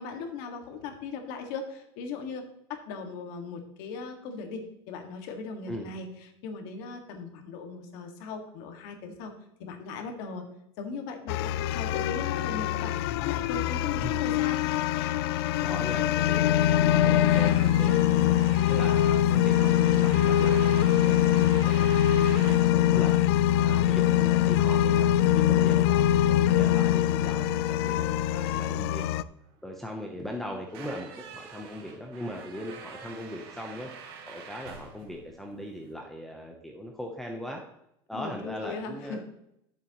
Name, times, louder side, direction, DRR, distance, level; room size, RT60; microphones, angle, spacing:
voice 1, 0.0-2.4 2.7-6.1 6.4-9.3 9.6-10.4 10.8-12.9 13.2-15.2 38.1-39.2, left 4 dB, 65° left, 4 dB, 1.8 m, -38 dB
sound 1, 11.3-29.2, left 12 dB, 85° left, 0.4 m, -23 dB
voice 2, 14.0-14.3 15.6-18.4 18.7-25.1 25.3-29.1 29.6-33.9 34.3-37.6 38.1-39.2, left 1 dB, ahead, 1 dB, 0.7 m, -39 dB
sound 2, 17.0-35.9, right 6 dB, 85° right, 1.8 m, -46 dB
12.0 x 7.2 x 3.0 m, 0.78 s
cardioid pair, 155°, 13 cm